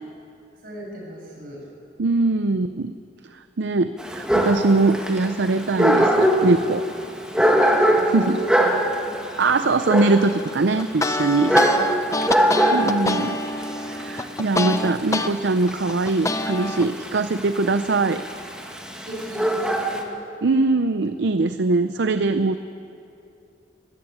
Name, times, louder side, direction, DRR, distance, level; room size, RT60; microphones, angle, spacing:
voice 1, 0.6-1.6 7.9-9.0 11.4-11.9 12.2-12.5 19.1-20.1, equal, 50° right, -2 dB, 6.9 m, -35 dB
voice 2, 2.0-2.9 3.3-6.9 8.1-8.4 9.4-11.5 12.7-13.4 13.8-18.2 20.4-22.6, right 3 dB, 70° right, 10 dB, 0.6 m, -21 dB
Dog, 4.0-20.0, equal, 5° right, 1.5 m, -23 dB
sound 1, 10.8-15.3 15.7-16.9, left 2 dB, 15° left, 0.7 m, -26 dB
21.0 x 14.0 x 8.9 m, 2.6 s
head